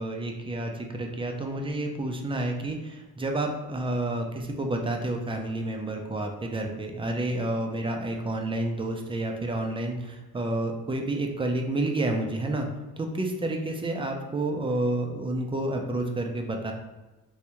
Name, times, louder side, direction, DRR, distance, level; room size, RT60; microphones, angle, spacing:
voice 1, 0.0-12.7 13.0-16.7, right 2 dB, 15° right, 3 dB, 0.4 m, -30 dB
3.4 x 2.6 x 2.9 m, 1.1 s
cardioid pair, 100°, 36 cm